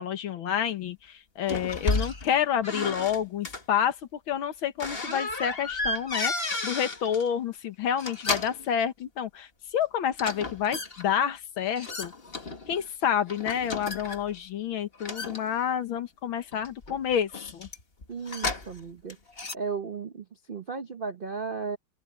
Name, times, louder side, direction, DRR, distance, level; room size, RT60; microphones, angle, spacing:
voice 1, 0.0-12.1 12.7-17.7, left 9 dB, 75° left, 2.0 m, -29 dB
sound 1, 1.5-2.3 2.6-3.6 4.8-7.3 7.9-8.7 10.2-11.0 11.8-12.9 13.3-14.4 15.0-16.0 16.5-18.8 19.1-19.5, left 3 dB, 30° left, 1.9 m, -33 dB
voice 2, 18.1-19.2 19.5-21.8, right 5 dB, 65° right, 0.5 m, -35 dB
open air
omnidirectional pair, 2.3 m